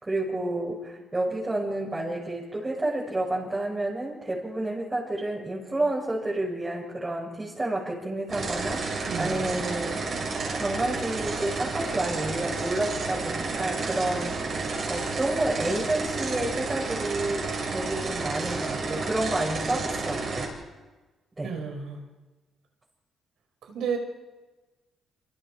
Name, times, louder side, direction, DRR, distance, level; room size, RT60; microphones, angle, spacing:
voice 1, 0.0-10.3 10.6-14.4 14.9-20.5 21.4-21.5, right 1 dB, 20° right, -4 dB, 6.2 m, -30 dB
sound 1, 8.3-20.5, right 3 dB, 50° right, 7.8 m, -31 dB
voice 2, 9.1-9.5 21.4-22.0 23.7-24.0, right 6 dB, 75° right, 4 dB, 5.2 m, -32 dB
27.0 x 26.0 x 5.1 m, 1.2 s
cardioid pair, 90°, 0 cm